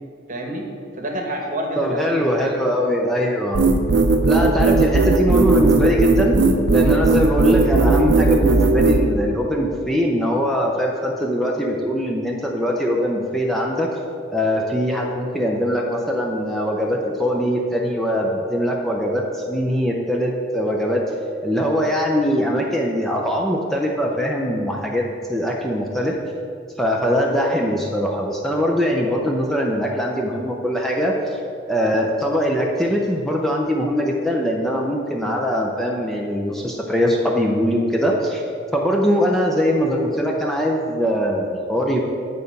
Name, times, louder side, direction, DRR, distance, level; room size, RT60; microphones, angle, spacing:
voice 1, 0.3-0.6 1.0-3.1, equal, 45° right, 2 dB, 1.0 m, -28 dB
voice 2, 1.8-3.6 4.3-6.4 6.7-13.9 14.3-21.0 21.4-26.2 26.8-31.4 31.7-38.4 38.7-42.2, equal, ahead, -1 dB, 0.5 m, -21 dB
sound 1, 3.5-9.0, right 3 dB, 65° right, 0.6 m, -16 dB
8.9 x 4.1 x 5.2 m, 2.5 s
head